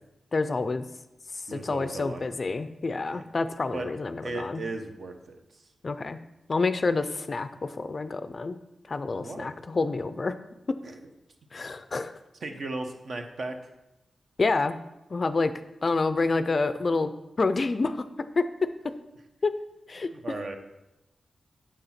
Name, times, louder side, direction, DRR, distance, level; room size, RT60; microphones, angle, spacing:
voice 1, 0.3-0.9 1.3-4.6 5.8-6.2 6.5-8.6 8.9-10.3 11.5-12.1 14.4-14.8 15.1-15.5 15.8-17.1 17.4-18.0 18.4-18.5 19.4-19.5 19.9-20.1, left 3 dB, 40° left, 11 dB, 0.4 m, -28 dB
voice 2, 1.5-2.2 3.1-3.2 3.7-3.9 4.2-5.7 9.2-9.5 10.8-11.0 12.4-13.6 20.1-20.6, right 2 dB, 55° right, 5 dB, 1.0 m, -36 dB
7.5 x 6.7 x 5.8 m, 0.96 s
wide cardioid pair, 135°, 0 cm